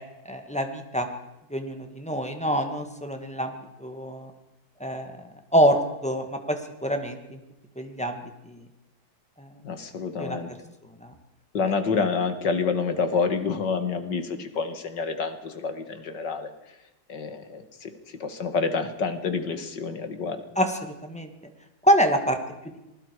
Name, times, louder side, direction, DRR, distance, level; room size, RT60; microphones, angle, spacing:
voice 1, 0.3-1.1 1.5-4.3 4.8-5.1 5.5-7.4 7.8-8.6 9.4-9.5 10.2-10.4 11.0-11.1 20.6-21.3 21.8-22.4, equal, 5° left, 5 dB, 1.9 m, -26 dB
voice 2, 9.6-10.5 11.5-16.5 17.1-17.9 18.2-20.4, left 5 dB, 60° left, 8 dB, 2.3 m, -28 dB
26.5 x 20.5 x 4.9 m, 0.97 s
omnidirectional pair, 2.2 m